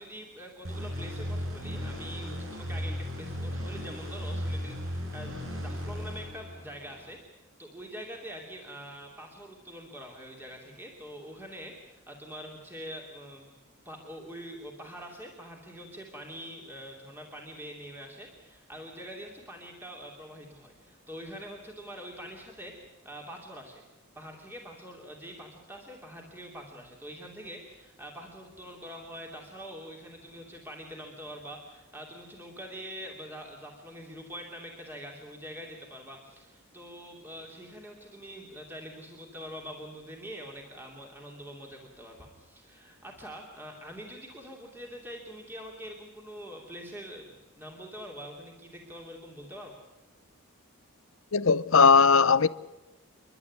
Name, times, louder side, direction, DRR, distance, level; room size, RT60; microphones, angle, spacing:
voice 1, 0.0-13.5 13.8-23.8 24.1-49.7, equal, 10° right, 2.8 m, -44 dB
sound 1, 0.6-7.1, equal, 65° right, 5.5 m, -36 dB
voice 2, 51.3-52.5, left 5 dB, 60° left, 0.7 m, -19 dB
29.5 x 12.0 x 9.6 m
head